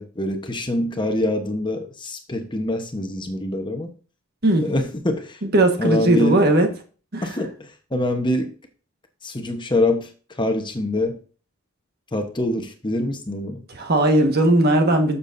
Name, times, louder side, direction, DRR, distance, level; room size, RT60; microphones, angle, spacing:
voice 1, 0.0-3.9 4.6-5.4 5.8-6.4 7.2-8.5 9.2-10.1 10.4-11.2 12.1-13.6, left 1 dB, 20° left, 5 dB, 1.1 m, -24 dB
voice 2, 5.4-6.7 7.1-7.3 13.7-15.2, right 1 dB, 50° right, 5 dB, 1.6 m, -18 dB
12.5 x 7.0 x 2.7 m, 0.37 s
head